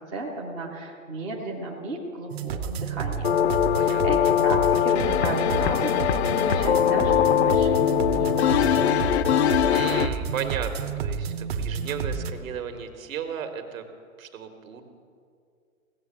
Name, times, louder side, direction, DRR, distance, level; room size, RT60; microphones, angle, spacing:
voice 1, 0.1-3.4 3.8-8.6, right 2 dB, 5° right, -3 dB, 0.4 m, -34 dB
sound 1, 2.3-12.3, right 6 dB, 45° right, 0.8 m, -30 dB
sound 2, 3.2-10.1, left 11 dB, 50° left, 0.5 m, -22 dB
voice 2, 3.5-4.2 9.7-13.8 14.2-14.8, right 7 dB, 70° right, 6 dB, 1.7 m, -34 dB
16.5 x 6.8 x 7.4 m, 2.3 s
hypercardioid pair, 140°, 42 cm